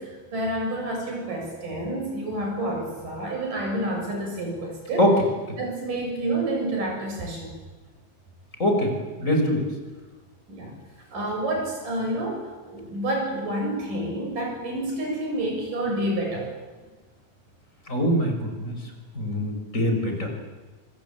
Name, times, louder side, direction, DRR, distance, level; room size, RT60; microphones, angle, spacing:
voice 1, 0.0-5.1 5.6-7.6 10.5-10.7 11.1-16.5, right 1 dB, 75° right, 1 dB, 8.8 m, -29 dB
voice 2, 8.6-9.6 17.9-18.7 19.1-20.3, equal, 20° left, 3 dB, 5.8 m, -23 dB
25.5 x 25.0 x 8.9 m, 1.3 s
omnidirectional pair, 3.8 m